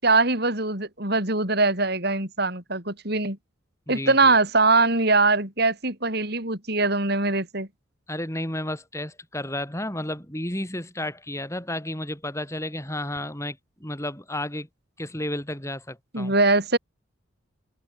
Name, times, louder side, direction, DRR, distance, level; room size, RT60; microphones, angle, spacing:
voice 1, 0.0-3.4 3.9-7.7 16.1-16.8, right 3 dB, 55° right, 7.5 m, -22 dB
voice 2, 3.9-4.3 8.1-14.7 15.0-16.3, left 1 dB, 15° left, 7.3 m, -32 dB
head